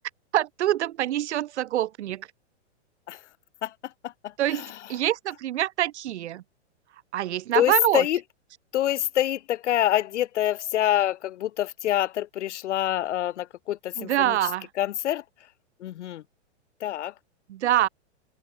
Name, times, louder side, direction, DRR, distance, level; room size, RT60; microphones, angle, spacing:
voice 1, 0.3-2.3 4.4-4.6 4.9-6.4 7.1-8.0 14.0-14.7 17.5-17.9, right 13 dB, 75° right, 0.9 m, -25 dB
voice 2, 3.6-5.0 7.5-8.2 8.7-14.5 14.8-15.5 15.8-16.2 16.8-17.2, left 12 dB, 85° left, 0.7 m, -26 dB
open air
hypercardioid pair, 150°, 34 cm